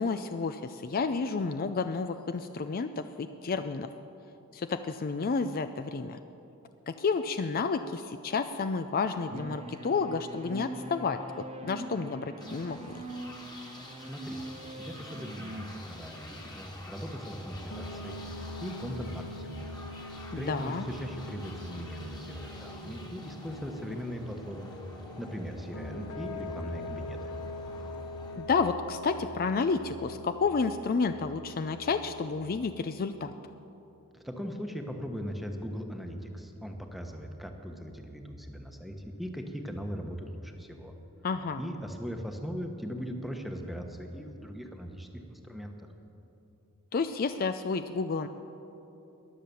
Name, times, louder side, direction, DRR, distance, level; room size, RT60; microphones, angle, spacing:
voice 1, 0.0-3.9 4.5-6.2 6.9-11.2 11.6-12.8 20.3-20.8 28.4-33.3 41.2-41.6 46.9-48.3, left 4 dB, 40° left, 9 dB, 0.4 m, -30 dB
sound 1, 9.3-15.7, right 1 dB, 30° right, 0.8 m, -42 dB
sound 2, 12.4-29.1, left 1 dB, 20° left, 1.7 m, -48 dB
voice 2, 13.9-14.4 14.7-18.2 18.6-19.8 20.4-24.8 25.2-27.3 34.1-40.9 41.6-45.7, equal, ahead, 3 dB, 1.1 m, -39 dB
sound 3, 17.7-32.9, left 2 dB, 65° left, 1.0 m, -43 dB
21.0 x 7.6 x 6.9 m, 2.9 s
head